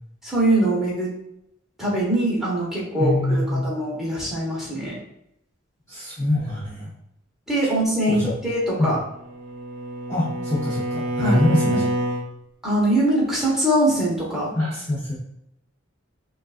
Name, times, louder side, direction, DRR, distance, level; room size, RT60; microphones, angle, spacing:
voice 1, 0.2-1.1 1.8-5.0 7.5-9.0 11.2-11.4 11.7-11.8 12.6-14.5, right 1 dB, ahead, -6 dB, 1.2 m, -22 dB
voice 2, 3.0-3.7 5.9-6.9 8.0-8.3 8.8-8.9 10.1-11.8 14.5-15.1, left 1 dB, 15° left, -10 dB, 0.8 m, -24 dB
Bowed string instrument, 8.9-12.3, right 1 dB, 80° right, 0.8 m, -27 dB
5.5 x 2.4 x 2.5 m, 0.80 s
head